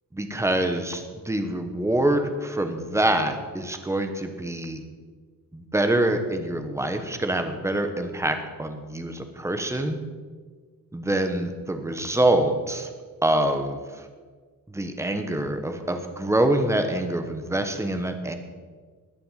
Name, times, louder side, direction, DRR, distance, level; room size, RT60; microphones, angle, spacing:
voice 1, 0.1-4.8 5.5-10.0 10.9-12.9 13.2-14.1 14.7-18.3, right 1 dB, 10° right, 6 dB, 1.1 m, -25 dB
20.0 x 6.9 x 7.4 m, 1.5 s
cardioid pair, 180°, 35 cm